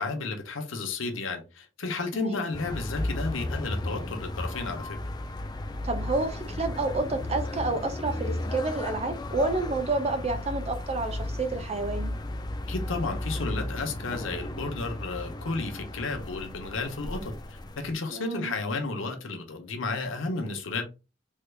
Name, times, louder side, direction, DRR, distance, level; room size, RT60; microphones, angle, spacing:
voice 1, 0.0-5.0 12.7-20.8, left 3 dB, 85° left, 0.8 m, -32 dB
sound 1, 2.5-17.9, left 1 dB, 20° left, 0.3 m, -35 dB
voice 2, 5.8-12.2 18.1-18.5, right 3 dB, 35° right, 0.5 m, -29 dB
3.6 x 3.3 x 2.2 m
head